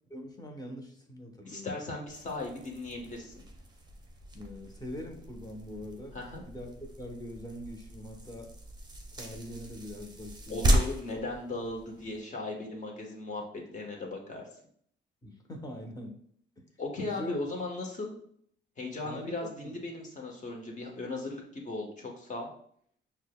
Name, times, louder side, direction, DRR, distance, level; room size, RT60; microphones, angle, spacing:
voice 1, 0.1-1.9 4.3-6.2 6.4-8.5 9.1-10.6 15.2-16.2 17.0-17.4 19.0-19.8, equal, 20° left, 2 dB, 0.9 m, -43 dB
voice 2, 1.5-3.3 6.1-6.4 10.5-14.5 16.8-18.1 18.8-22.5, left 2 dB, 40° left, 0 dB, 1.1 m, -37 dB
sound 1, 2.1-12.2, right 1 dB, 20° right, 0.7 m, -35 dB
6.0 x 2.2 x 2.2 m, 0.65 s
cardioid pair, 90°, 20 cm